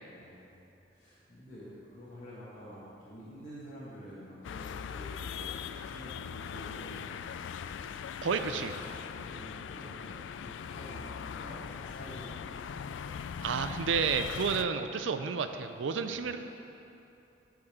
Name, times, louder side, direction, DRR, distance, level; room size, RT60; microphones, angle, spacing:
voice 1, 0.1-0.6 0.9-7.2 9.0-12.6 15.9-16.2, equal, 40° left, -10 dB, 1.7 m, -48 dB
sound 1, 4.4-14.6, left 7 dB, 75° left, 0.3 m, -40 dB
voice 2, 8.2-8.7 13.4-16.4, right 5 dB, 80° right, 8 dB, 0.4 m, -31 dB
9.5 x 5.2 x 6.7 m, 2.9 s
head